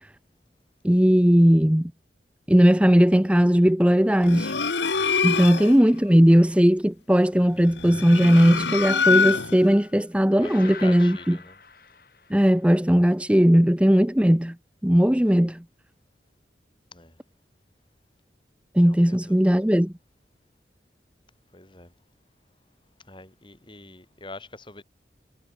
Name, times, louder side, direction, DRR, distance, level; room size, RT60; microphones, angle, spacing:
voice 1, 0.8-1.9 2.5-4.5 5.2-11.4 12.3-14.5 14.8-15.6 18.7-19.9, equal, 5° right, 0.8 m, -18 dB
sound 1, 4.2-5.8 7.7-9.7, left 5 dB, 80° left, 1.4 m, -24 dB
sound 2, 10.4-12.7, left 5 dB, 55° left, 5.4 m, -44 dB
voice 2, 10.4-11.6 16.9-17.2 18.8-19.4 21.5-21.9 23.1-24.8, left 2 dB, 30° left, 3.8 m, -44 dB
head